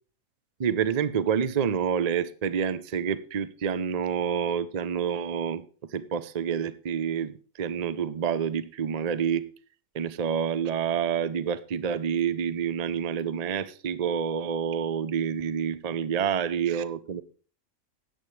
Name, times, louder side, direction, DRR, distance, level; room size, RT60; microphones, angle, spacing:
voice 1, 0.6-5.6 5.9-9.5 9.9-17.2, right 7 dB, 45° right, 14 dB, 0.5 m, -28 dB
14.0 x 9.7 x 3.2 m, 0.40 s
omnidirectional pair, 1.5 m